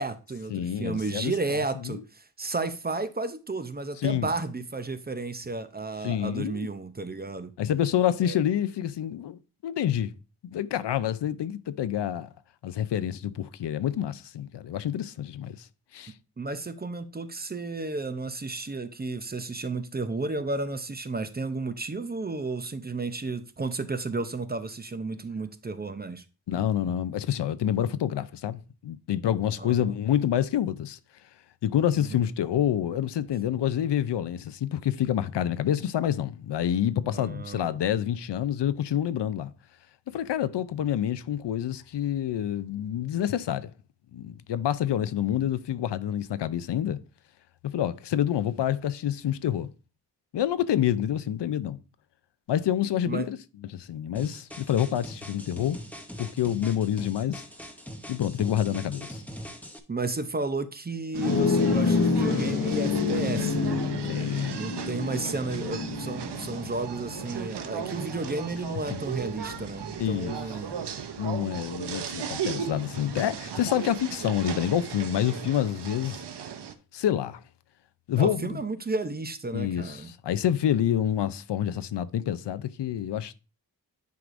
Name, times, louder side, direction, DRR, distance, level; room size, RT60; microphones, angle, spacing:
voice 1, 0.0-7.5 8.2-8.4 16.4-26.2 29.6-29.9 32.0-32.3 37.1-37.8 53.1-53.3 59.9-63.8 64.6-70.8 78.2-80.1, right 3 dB, 25° right, 0.5 m, -33 dB
voice 2, 0.5-1.3 1.8-2.0 4.0-4.3 6.0-6.7 7.6-10.1 10.4-12.3 12.6-15.7 15.9-16.1 26.5-31.0 31.6-39.5 40.1-43.7 44.1-47.0 47.6-49.7 50.3-51.8 52.5-53.4 53.7-55.8 56.2-57.4 58.1-59.2 64.1-64.6 70.0-70.3 71.2-76.2 76.9-77.4 78.1-78.5 79.5-80.0 80.2-83.3, left 10 dB, 80° left, 0.5 m, -27 dB
sound 1, 54.2-59.8, equal, 5° left, 0.8 m, -42 dB
sound 2, 61.1-70.7, left 4 dB, 50° left, 0.9 m, -29 dB
sound 3, 61.1-76.7, right 8 dB, 75° right, 0.7 m, -37 dB
9.3 x 4.8 x 2.5 m
wide cardioid pair, 110°, 41 cm